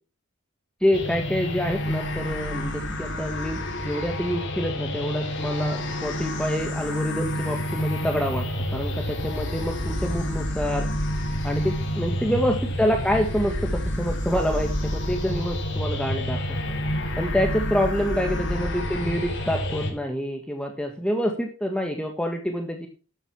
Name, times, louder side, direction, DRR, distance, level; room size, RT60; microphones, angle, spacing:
voice 1, 0.8-10.9 11.4-16.7 17.2-22.9, equal, 5° left, 3 dB, 1.5 m, -27 dB
sound 1, 0.9-19.9, equal, 60° left, 4.4 m, -29 dB
12.5 x 8.0 x 5.9 m, 0.35 s
head